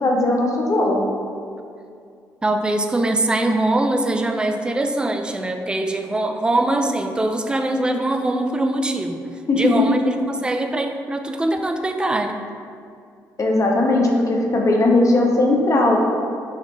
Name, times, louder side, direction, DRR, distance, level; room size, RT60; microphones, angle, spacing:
voice 1, 0.0-1.1 9.5-10.0 13.4-16.0, left 2 dB, 40° left, -1 dB, 0.8 m, -18 dB
voice 2, 2.4-9.2 9.6-12.4, right 2 dB, 10° right, 5 dB, 0.3 m, -22 dB
5.7 x 2.1 x 3.1 m, 2.4 s
hypercardioid pair, 50°, 8 cm